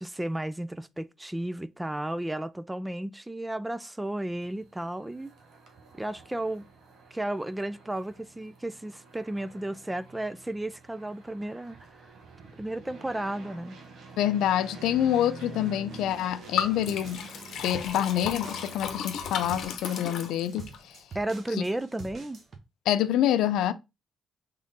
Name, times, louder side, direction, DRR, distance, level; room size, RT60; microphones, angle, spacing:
voice 1, 0.0-5.3 5.9-6.7 7.1-12.1 12.6-13.8 21.1-22.4, right 1 dB, 10° right, 0.4 m, -33 dB
sound 1, 4.4-19.7, right 4 dB, 65° right, 1.2 m, -48 dB
voice 2, 14.2-17.3 17.6-21.0 22.9-23.7, left 11 dB, 85° left, 0.4 m, -26 dB
Liquid, 16.6-20.8, left 7 dB, 70° left, 0.8 m, -34 dB
sound 2, 17.0-22.6, right 4 dB, 50° right, 1.1 m, -47 dB
3.7 x 3.6 x 4.0 m
cardioid pair, 90°, 0 cm